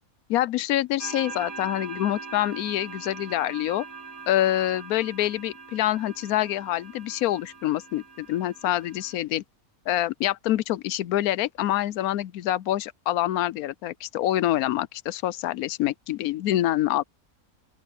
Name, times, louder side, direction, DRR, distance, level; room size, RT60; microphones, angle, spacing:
voice 1, 0.3-3.9 4.3-9.4 9.9-17.0, left 14 dB, 90° left, 1.1 m, -26 dB
sound 1, 1.0-9.2, right 4 dB, 75° right, 3.3 m, -42 dB
open air
omnidirectional pair, 1.5 m